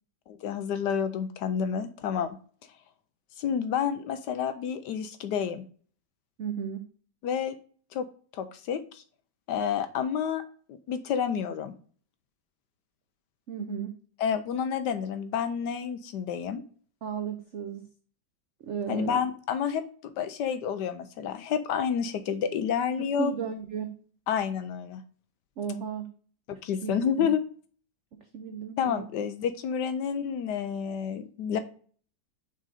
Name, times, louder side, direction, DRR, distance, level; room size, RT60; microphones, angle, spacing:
voice 1, 0.3-2.4 3.4-5.6 7.2-7.6 7.9-8.1 8.3-9.0 9.5-10.4 10.9-11.7 14.2-16.6 18.9-19.8 20.2-23.3 24.3-25.0 26.5-27.4 28.8-31.6, left 7 dB, 75° left, 10 dB, 1.1 m, -29 dB
voice 2, 6.4-6.9 13.5-13.9 17.0-17.9 18.6-19.2 23.0-24.0 25.6-26.1 26.8-26.9 27.2-27.3 28.2-29.1, right 7 dB, 85° right, 6 dB, 0.6 m, -34 dB
6.3 x 4.8 x 4.1 m, 0.44 s
omnidirectional pair, 2.1 m